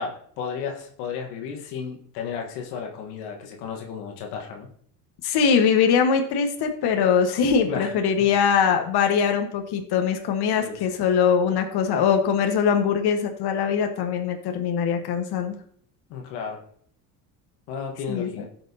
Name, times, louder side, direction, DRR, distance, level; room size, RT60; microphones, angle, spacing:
voice 1, 0.0-4.7 7.7-7.9 10.6-10.8 16.1-16.6 17.7-18.5, left 6 dB, 75° left, 3 dB, 1.5 m, -33 dB
voice 2, 5.2-15.6 18.1-18.3, left 6 dB, 55° left, 5 dB, 1.4 m, -22 dB
16.5 x 6.1 x 2.8 m, 0.62 s
hypercardioid pair, 70°, 47 cm